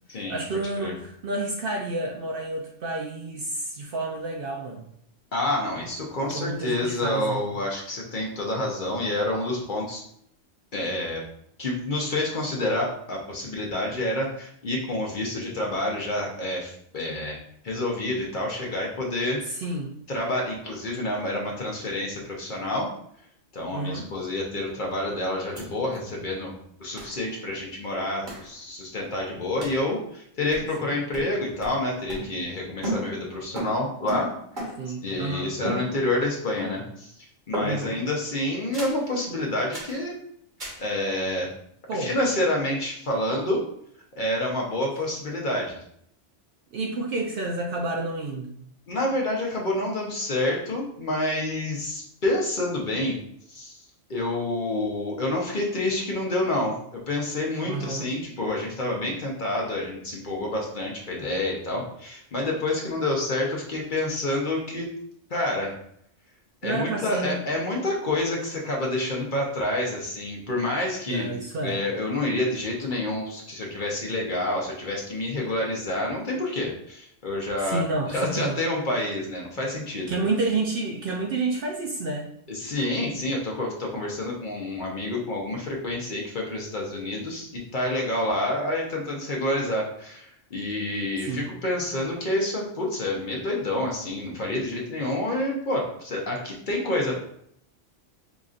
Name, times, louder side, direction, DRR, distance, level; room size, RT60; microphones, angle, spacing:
voice 1, 0.1-4.8 6.2-7.4 19.4-19.9 23.7-24.1 30.8-31.0 34.8-35.5 37.6-38.0 41.9-42.1 46.7-48.5 57.6-58.1 66.6-67.4 71.1-71.8 77.6-78.6 80.1-82.3 91.2-91.5, right 2 dB, 60° right, 0 dB, 0.6 m, -30 dB
voice 2, 5.3-10.0 10.7-11.2 11.6-17.4 17.6-19.4 20.1-22.9 23.5-26.5 26.8-34.3 35.0-37.1 37.5-40.1 40.8-41.5 41.9-43.6 44.2-45.8 48.9-53.2 53.5-53.8 54.1-64.9 65.3-65.8 66.6-71.3 71.6-77.8 78.1-80.1 82.5-97.2, left 1 dB, 50° left, -1 dB, 0.8 m, -28 dB
sound 1, 25.6-25.7 25.9-26.0 27.0-27.2 28.3-28.5 29.6-29.9 30.5-30.9 31.1-32.6 32.8-35.0 35.6-36.3 36.6-37.0 37.5-38.0 38.7-39.1 39.7-40.0 40.6-40.9, right 1 dB, 40° right, 1.3 m, -35 dB
4.9 x 2.6 x 2.4 m, 0.68 s
omnidirectional pair, 1.2 m